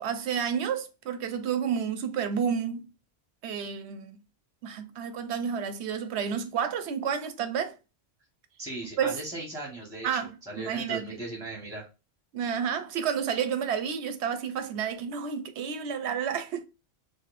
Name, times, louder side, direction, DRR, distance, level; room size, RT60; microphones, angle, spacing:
voice 1, 0.0-2.9 3.4-4.2 4.6-7.8 9.0-9.2 10.0-11.2 12.3-16.6, right 7 dB, 90° right, 0.9 m, -30 dB
voice 2, 8.6-11.9, right 2 dB, 5° right, 1.3 m, -38 dB
4.1 x 2.6 x 2.5 m
omnidirectional pair, 1.1 m